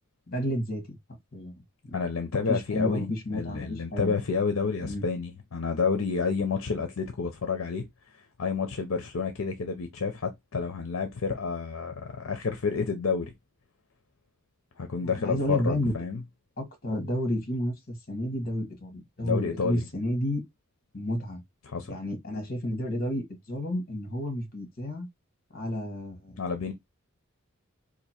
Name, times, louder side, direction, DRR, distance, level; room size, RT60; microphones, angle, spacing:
voice 1, 0.3-1.0 1.3-1.5 1.9-4.1 4.8-5.0 15.0-15.9 16.6-20.4 20.9-21.4 21.9-25.1 25.5-26.3, left 1 dB, 45° left, 1.3 m, -31 dB
voice 2, 1.9-7.9 8.4-13.3 14.8-16.2 19.2-19.8 21.6-22.0 26.4-26.7, left 5 dB, 70° left, 0.6 m, -29 dB
2.9 x 2.6 x 4.2 m
head